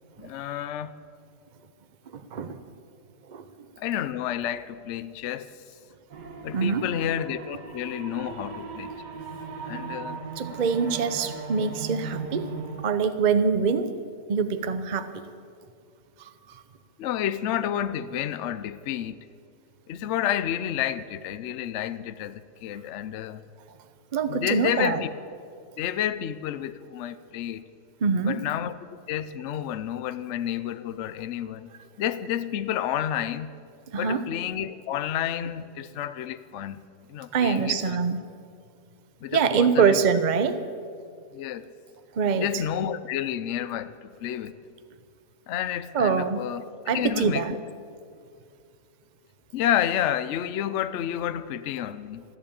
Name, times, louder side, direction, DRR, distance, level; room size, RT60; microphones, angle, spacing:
voice 1, 0.2-0.9 3.8-5.5 6.4-8.9 9.7-10.2 17.0-19.2 19.9-23.4 24.3-25.1 25.8-27.6 28.2-28.7 29.1-31.7 32.0-33.5 34.0-36.8 37.1-38.0 39.2-40.0 41.3-41.7 42.4-44.6 45.5-46.6 46.9-47.6 49.5-52.4, left 10 dB, 65° left, 13 dB, 0.7 m, -30 dB
voice 2, 2.1-2.6 3.3-3.5 6.5-6.9 10.4-12.5 12.8-14.0 14.3-15.1 16.2-16.6 24.1-25.0 28.0-28.4 33.9-34.2 37.3-38.2 39.3-40.6 42.1-42.5 45.9-46.5 46.9-47.6, right 6 dB, 50° right, 10 dB, 0.5 m, -24 dB
sound 1, 6.1-12.9, right 4 dB, 80° right, 2.0 m, -37 dB
14.0 x 12.0 x 8.6 m, 2.2 s
omnidirectional pair, 1.8 m